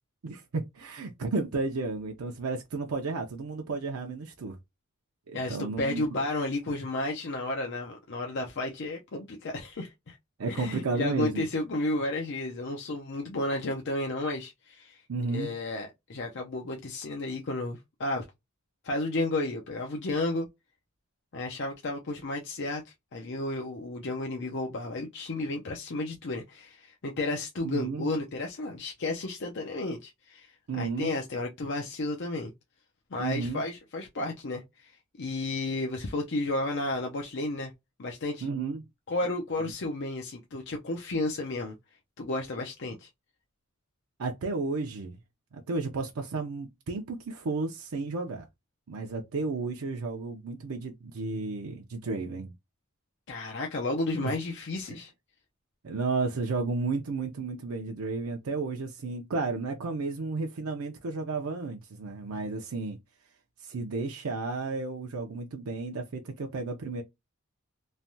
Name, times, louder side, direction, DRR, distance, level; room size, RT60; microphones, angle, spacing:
voice 1, 0.2-4.6 5.3-6.2 10.4-11.4 15.1-15.5 27.6-28.1 30.7-31.2 33.2-33.6 38.4-38.8 39.6-39.7 44.2-45.2 45.5-48.5 48.9-52.5 54.2-54.3 55.8-63.0 63.6-67.0, right 3 dB, 85° right, 0.5 m, -33 dB
voice 2, 5.3-10.2 10.6-15.0 15.3-18.2 18.8-20.5 21.3-32.5 33.1-34.9 35.2-37.7 38.0-38.5 39.1-41.8 42.2-43.1 53.3-55.1, left 2 dB, 55° left, 0.6 m, -32 dB
3.2 x 2.2 x 2.6 m
head